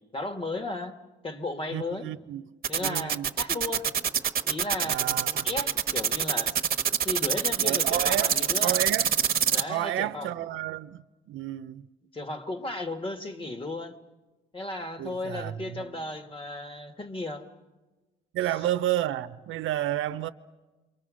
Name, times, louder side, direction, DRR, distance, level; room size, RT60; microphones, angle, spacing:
voice 1, 0.1-2.1 2.7-4.1 4.4-6.5 7.0-8.8 9.5-10.3 12.1-14.0 14.5-17.5, left 2 dB, 25° left, 1.8 m, -35 dB
voice 2, 1.7-2.4 2.8-3.3 4.8-5.5 7.6-8.4 8.6-9.1 9.7-11.9 15.0-15.9 18.3-20.3, right 13 dB, 85° right, 0.8 m, -31 dB
sound 1, 2.6-9.6, right 8 dB, 50° right, 1.2 m, -25 dB
28.0 x 24.5 x 6.3 m
cardioid pair, 90°, 20 cm